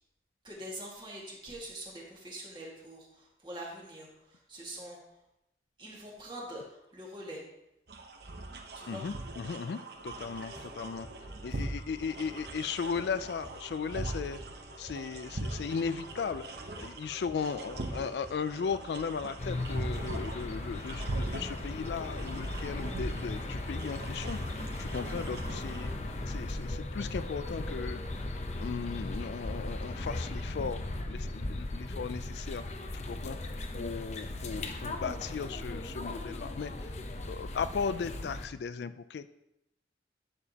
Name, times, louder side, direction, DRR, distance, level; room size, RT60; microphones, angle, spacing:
voice 1, 0.4-5.0 5.8-7.4 8.8-9.1, right 1 dB, 25° right, -3 dB, 1.9 m, -44 dB
sound 1, 7.9-26.0, right 2 dB, 70° right, 0.9 m, -41 dB
voice 2, 8.9-11.1 11.4-14.4 14.8-16.4 16.8-25.9 26.3-28.0 28.6-32.6 32.9-33.4 33.7-36.9 37.3-39.3, left 5 dB, 75° left, 13 dB, 0.3 m, -37 dB
sound 2, 10.1-26.5, equal, 5° right, 2.4 m, -51 dB
sound 3, 19.4-38.5, left 2 dB, 40° left, 0.7 m, -37 dB
11.0 x 6.9 x 2.8 m, 0.86 s
head